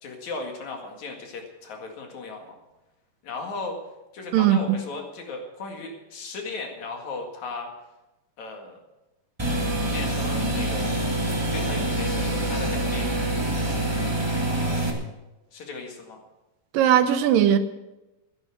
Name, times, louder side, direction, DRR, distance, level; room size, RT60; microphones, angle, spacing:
voice 1, 0.0-2.6 3.2-3.8 4.1-7.7 8.4-8.8 9.9-10.9 11.5-13.1 15.5-16.2, left 3 dB, 60° left, 3.2 m, -36 dB
sound 1, 9.4-14.9, right 1 dB, 20° right, 0.7 m, -26 dB
voice 2, 16.7-17.6, right 10 dB, 85° right, 2.6 m, -18 dB
14.5 x 11.0 x 6.3 m
omnidirectional pair, 3.9 m